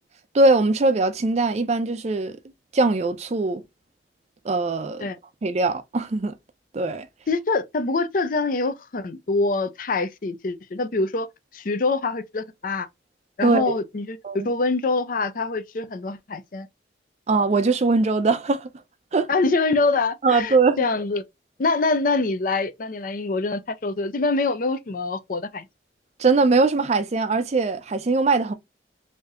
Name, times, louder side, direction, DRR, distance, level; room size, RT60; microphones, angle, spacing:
voice 1, 0.3-2.4 2.7-3.6 4.4-5.1 5.4-6.3 6.7-7.1 13.4-13.8 14.2-14.5 17.3-18.7 19.1-19.3 20.2-20.8 26.2-28.5, right 3 dB, 40° right, 0.4 m, -21 dB
voice 2, 7.3-11.3 11.5-12.9 13.4-14.2 14.4-16.7 19.3-21.2 21.6-25.7, left 3 dB, 50° left, 0.5 m, -25 dB
3.4 x 2.7 x 3.6 m
head